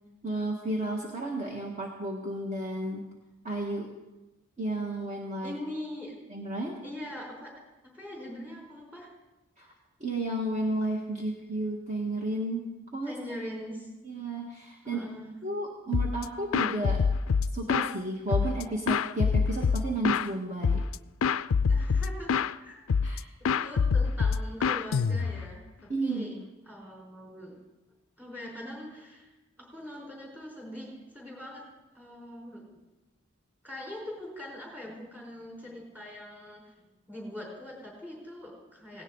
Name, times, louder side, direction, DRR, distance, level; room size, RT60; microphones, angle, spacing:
voice 1, 0.2-3.0 3.4-3.9 4.6-5.5 6.3-6.8 9.6-9.7 10.0-13.4 14.0-15.0 15.4-17.0 17.5-20.8 23.0-23.3 25.9-26.5, right 2 dB, 35° right, -2 dB, 1.7 m, -32 dB
voice 2, 5.4-6.1 6.8-7.5 7.9-9.1 13.0-13.9 14.8-15.3 21.7-22.8 23.6-26.4 26.7-27.5 28.2-29.3 29.6-31.6 31.9-32.6 33.6-39.0, left 1 dB, 10° right, -2 dB, 4.7 m, -42 dB
sound 1, 15.9-16.2 16.5-17.9 18.3-20.3 20.6-21.0 21.2-22.5 22.9-23.2 23.4-25.5, left 5 dB, 75° left, 0.4 m, -25 dB
18.0 x 17.5 x 4.0 m, 1.1 s
head